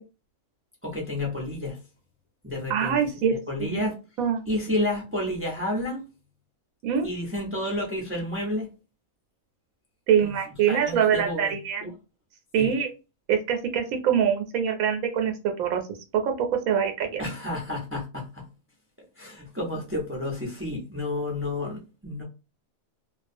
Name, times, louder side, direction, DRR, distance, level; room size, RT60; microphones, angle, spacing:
voice 1, 0.8-1.8 2.4-4.0 4.5-6.1 7.0-8.7 10.2-10.3 10.7-11.5 11.8-11.9 12.6-12.7 17.2-18.5 19.2-22.2, left 1 dB, 20° right, 0.4 m, -30 dB
voice 2, 2.7-3.8 4.2-4.4 6.8-7.1 10.1-11.9 12.5-12.9 13.3-15.8 16.1-17.2, right 8 dB, 90° right, 1.0 m, -24 dB
2.3 x 2.3 x 2.5 m
omnidirectional pair, 1.4 m